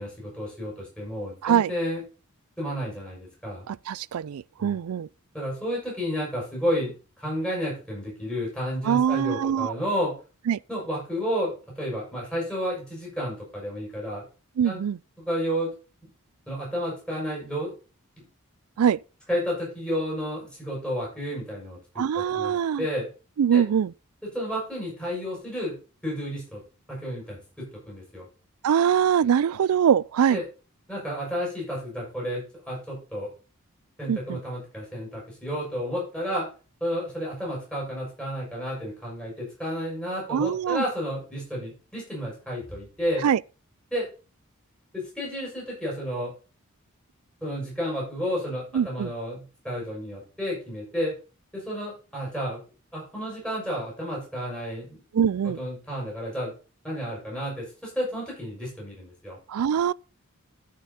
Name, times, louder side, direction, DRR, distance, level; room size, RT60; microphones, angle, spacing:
voice 1, 0.0-2.0 2.6-3.7 4.6-4.8 5.3-10.1 10.7-14.2 14.6-14.8 15.2-15.7 16.5-17.7 19.3-23.1 23.5-23.6 24.3-25.8 26.0-26.6 26.9-28.3 30.3-30.4 30.9-33.3 34.0-36.5 36.8-43.3 43.9-44.1 44.9-46.3 47.4-51.1 51.5-52.6 52.9-55.0 55.6-56.5 56.8-59.4, equal, 5° left, 6.4 m, -31 dB
voice 2, 3.7-5.1 8.8-9.7 10.5-10.6 14.6-15.0 18.8-19.0 22.0-22.9 23.4-23.9 28.6-30.4 34.1-34.4 40.3-40.8 43.2-43.4 48.7-49.1 55.1-55.6 59.5-59.9, right 8 dB, 85° right, 0.4 m, -23 dB
13.0 x 5.9 x 4.1 m
head